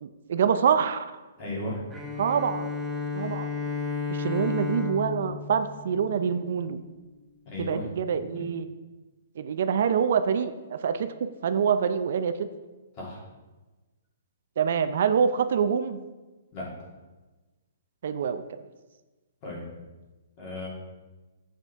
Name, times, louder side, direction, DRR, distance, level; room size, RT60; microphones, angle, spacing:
voice 1, 0.0-1.0 2.2-2.7 3.1-3.5 4.1-6.8 7.6-8.6 9.4-11.1 11.4-12.3 14.6-16.0 18.0-18.4, right 7 dB, 60° right, 10 dB, 0.4 m, -25 dB
voice 2, 1.4-1.8 7.5-7.8 8.3-8.5 13.0-13.2 16.5-16.7 19.4-19.6 20.4-20.7, left 2 dB, 35° left, -4 dB, 2.7 m, -35 dB
Bowed string instrument, 1.9-6.6, left 5 dB, 10° right, 0.7 m, -33 dB
7.3 x 6.7 x 3.5 m, 1.2 s
hypercardioid pair, 160°, 0 cm